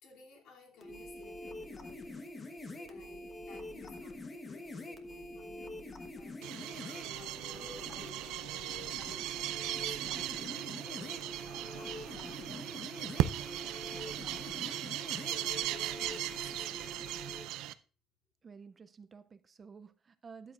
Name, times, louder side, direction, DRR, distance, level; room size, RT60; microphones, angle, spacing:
voice 1, 0.0-2.4 2.9-6.8 7.1-13.9 14.3-14.9 15.3-16.9, left 5 dB, 65° left, 0 dB, 2.7 m, -56 dB
sound 1, 0.8-17.4, left 1 dB, 20° left, 1.1 m, -45 dB
sound 2, 6.4-17.7, right 14 dB, 80° right, 0.4 m, -37 dB
voice 2, 18.4-20.5, right 5 dB, 25° right, 12 dB, 0.4 m, -52 dB
13.0 x 9.5 x 2.4 m, 0.37 s
cardioid pair, 165°, 0 cm